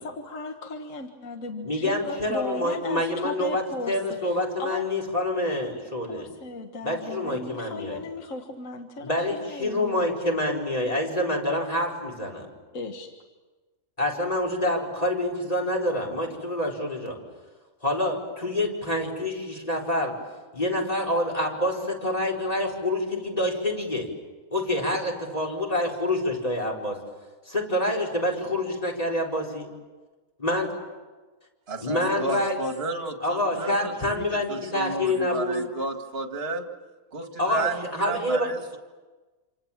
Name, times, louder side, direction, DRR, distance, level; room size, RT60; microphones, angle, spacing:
voice 1, 0.0-4.9 6.1-10.0 12.7-13.1, left 3 dB, 65° left, 4 dB, 1.9 m, -36 dB
voice 2, 1.6-6.3 6.8-8.0 9.0-12.5 14.0-17.2 17.8-20.1 20.5-24.1 24.5-27.0 27.5-29.7 30.4-30.7 31.8-32.6 33.2-35.5 37.4-38.5, left 1 dB, 25° left, 0 dB, 4.7 m, -27 dB
voice 3, 31.7-34.2 34.5-36.7 37.1-38.8, right 3 dB, 45° right, 5 dB, 2.1 m, -32 dB
28.0 x 27.0 x 7.4 m, 1.3 s
omnidirectional pair, 1.5 m